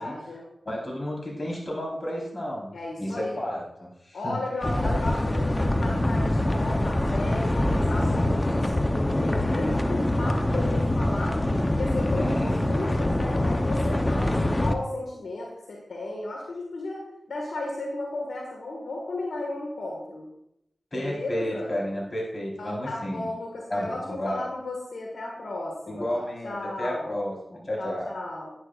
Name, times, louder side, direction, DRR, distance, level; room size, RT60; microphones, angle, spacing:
voice 1, 0.0-0.5 2.7-3.4 4.1-11.4 11.7-17.0 17.3-20.3 20.9-21.7 22.6-27.2 27.8-28.5, left 2 dB, 90° left, -1 dB, 1.8 m, -34 dB
voice 2, 0.7-2.7 3.0-4.4 4.8-5.0 12.1-12.5 20.9-23.3 23.7-24.4 25.9-28.1, equal, 45° left, -2 dB, 4.2 m, -32 dB
sound 1, 4.6-14.7, left 1 dB, 25° left, 0.8 m, -24 dB
11.0 x 9.8 x 2.5 m, 0.78 s
cardioid pair, 50°, 0 cm